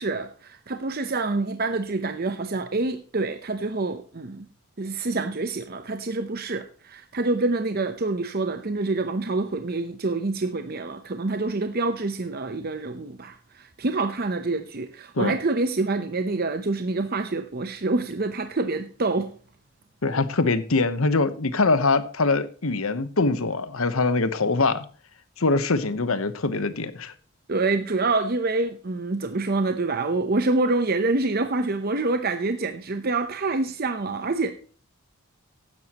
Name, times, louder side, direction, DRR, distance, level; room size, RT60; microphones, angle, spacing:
voice 1, 0.0-4.4 4.8-19.3 27.5-34.5, right 3 dB, 45° right, 0.8 m, -26 dB
voice 2, 20.0-24.9 25.4-27.1, left 3 dB, 75° left, 1.0 m, -23 dB
15.0 x 10.5 x 3.0 m
head